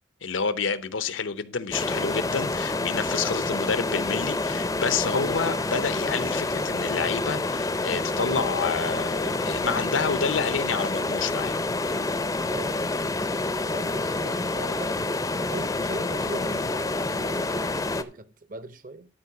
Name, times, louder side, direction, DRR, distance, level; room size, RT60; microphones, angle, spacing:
voice 1, 0.2-11.6, left 5 dB, 80° left, 0.8 m, -29 dB
sound 1, 1.7-18.0, left 2 dB, 15° left, 0.5 m, -28 dB
voice 2, 12.5-12.8 13.7-19.1, right 2 dB, 45° right, 0.7 m, -40 dB
11.5 x 4.6 x 5.9 m
head